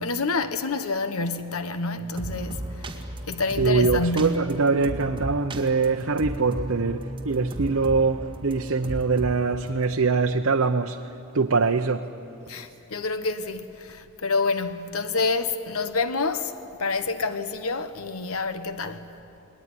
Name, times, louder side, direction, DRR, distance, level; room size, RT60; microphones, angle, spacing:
voice 1, 0.0-2.9 3.3-4.3 12.5-16.5 16.8-19.1, left 3 dB, 90° left, 1.1 m, -28 dB
sound 1, 2.1-9.4 9.7-9.8, right 1 dB, 25° right, 2.0 m, -35 dB
voice 2, 3.6-11.0 11.3-12.1, right 4 dB, 75° right, 0.8 m, -23 dB
29.0 x 21.0 x 9.7 m
head